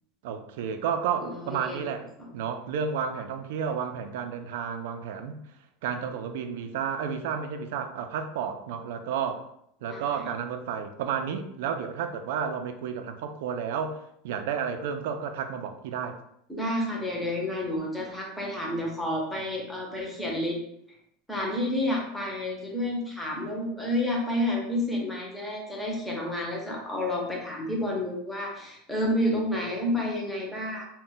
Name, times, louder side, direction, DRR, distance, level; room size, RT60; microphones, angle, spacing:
voice 1, 0.2-5.4 5.8-9.4 9.8-14.0 14.2-16.2, right 7 dB, 70° right, 8 dB, 0.3 m, -31 dB
voice 2, 1.2-1.8 2.2-2.3 9.9-10.3 16.5-20.6 21.3-30.8, left 1 dB, 5° left, -2 dB, 0.6 m, -30 dB
2.1 x 2.1 x 3.8 m, 0.74 s
supercardioid pair, 165°, 0 cm